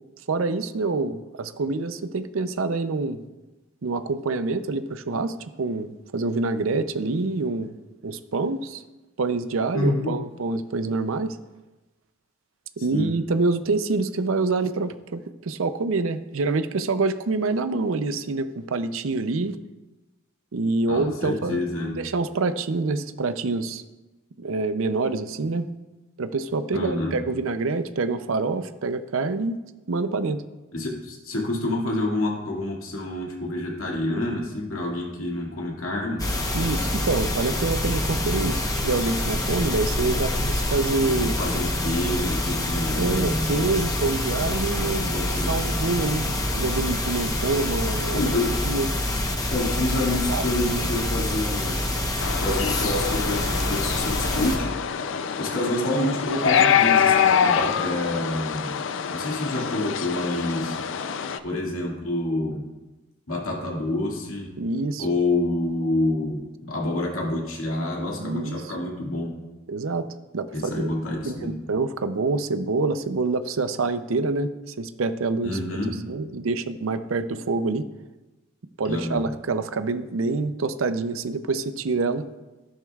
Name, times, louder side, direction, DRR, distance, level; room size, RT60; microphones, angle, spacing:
voice 1, 0.3-3.2 3.8-7.7 8.0-8.8 9.2-11.4 12.8-19.6 20.5-21.6 21.9-23.8 24.4-25.7 26.2-29.6 29.9-30.4 36.5-41.3 42.9-45.2 45.5-48.4 48.6-48.9 50.3-50.4 64.6-65.1 68.2-68.7 69.7-70.1 70.3-70.9 71.2-75.8 76.1-77.9 78.8-82.3, right 3 dB, 75° right, 11 dB, 0.6 m, -26 dB
voice 2, 9.7-10.1 12.9-13.1 20.9-22.0 26.7-27.2 30.7-36.3 41.1-43.7 44.8-45.7 48.1-48.6 49.5-51.8 52.4-54.8 55.4-58.8 59.1-60.8 61.4-62.7 63.3-64.6 65.0-69.4 70.5-71.6 75.4-76.0 78.8-79.3, left 1 dB, 85° left, -2 dB, 2.2 m, -28 dB
sound 1, 36.2-54.6, left 1 dB, 15° left, 0.9 m, -26 dB
sound 2, 52.2-61.4, left 7 dB, 65° left, 0.4 m, -25 dB
12.0 x 11.0 x 2.4 m, 1.1 s
head